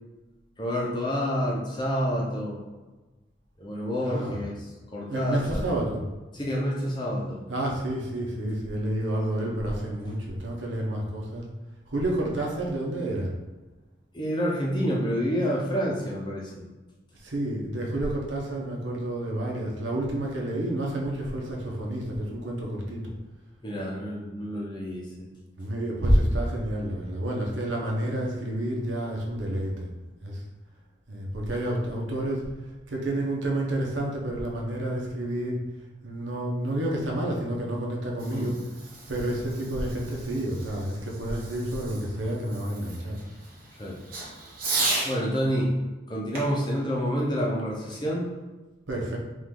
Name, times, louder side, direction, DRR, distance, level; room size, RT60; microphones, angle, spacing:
voice 1, 0.6-2.6 3.6-4.6 4.9-5.6 6.3-7.4 9.4-9.5 14.1-16.6 23.6-25.3 38.3-38.5 43.8-44.0 45.0-45.7 46.1-48.3, equal, 25° left, -3 dB, 0.8 m, -28 dB
voice 2, 4.0-4.4 5.1-6.0 7.5-11.4 11.9-13.3 17.2-23.1 25.6-29.9 30.2-30.4 31.1-32.5 32.9-35.6 36.0-38.6 39.1-43.2 48.9-49.2, right 1 dB, 80° right, -2 dB, 1.0 m, -29 dB
Fireworks, 38.0-45.2 46.3-48.0, right 2 dB, 45° right, 1.3 m, -35 dB
5.0 x 2.6 x 3.8 m, 1.2 s
head